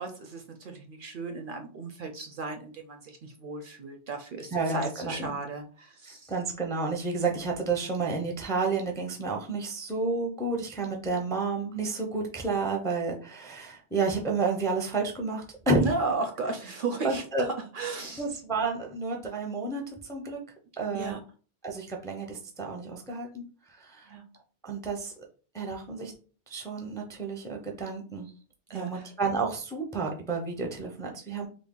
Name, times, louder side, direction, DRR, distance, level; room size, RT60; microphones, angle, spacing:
voice 1, 0.0-6.3 15.8-18.2 20.9-21.2 24.1-24.2 28.7-29.1, right 3 dB, 60° right, 5 dB, 0.6 m, -35 dB
voice 2, 4.5-5.3 6.1-15.8 17.0-17.4 18.2-20.4 20.8-21.2 21.6-23.4 23.7-24.1 24.6-25.1 25.5-26.1 26.5-28.3 28.7-31.5, right 3 dB, 5° left, 1 dB, 0.3 m, -31 dB
3.3 x 2.1 x 3.6 m, 0.38 s
omnidirectional pair, 1.1 m